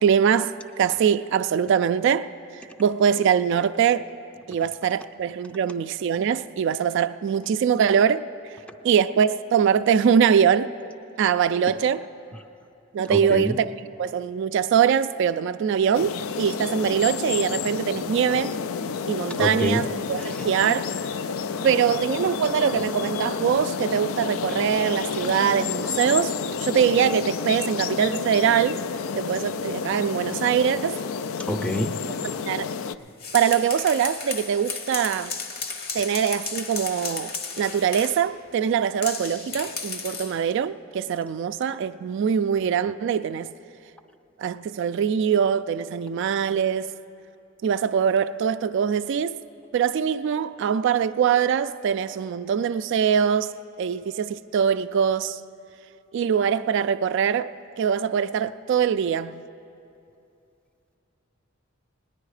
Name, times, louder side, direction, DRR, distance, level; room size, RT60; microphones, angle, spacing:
voice 1, 0.0-4.1 4.5-8.3 8.8-10.7 11.2-12.0 12.9-13.7 14.0-18.6 19.1-20.9 21.6-26.3 26.6-28.8 29.2-31.0 32.0-32.7 33.3-35.4 35.9-43.5 44.4-46.9 47.6-49.4 49.7-55.4 56.1-59.4, right 7 dB, 60° right, 0.3 m, -23 dB
voice 2, 13.1-13.6 19.4-19.9 20.2-20.3 31.4-32.0, left 1 dB, 5° left, 0.5 m, -26 dB
sound 1, 15.9-33.0, left 6 dB, 85° left, 0.4 m, -30 dB
sound 2, 33.0-38.3 39.0-40.4, left 5 dB, 50° left, 1.0 m, -34 dB
18.5 x 9.8 x 4.9 m
head